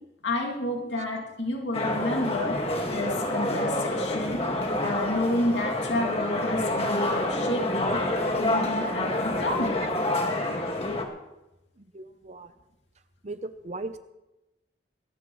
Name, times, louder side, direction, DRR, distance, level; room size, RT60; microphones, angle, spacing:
voice 1, 0.2-2.6 2.9-4.4 4.8-8.0 8.4-9.7, left 1 dB, 75° left, 0 dB, 2.3 m, -30 dB
sound 1, 1.7-11.0, left 1 dB, 30° left, 1.8 m, -28 dB
voice 2, 11.9-12.5 13.2-14.0, right 2 dB, 35° right, 10 dB, 0.7 m, -37 dB
20.5 x 17.0 x 3.1 m, 0.97 s
head